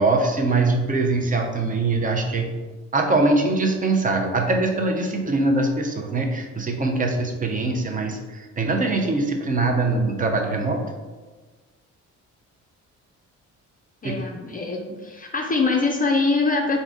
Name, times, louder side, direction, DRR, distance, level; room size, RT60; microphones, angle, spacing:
voice 1, 0.0-2.5 2.9-10.8 14.0-14.2, right 3 dB, 25° right, 3 dB, 0.6 m, -22 dB
voice 2, 14.0-16.8, left 3 dB, 30° left, 1 dB, 0.5 m, -23 dB
3.7 x 2.7 x 3.5 m, 1.3 s
cardioid pair, 90°, 30 cm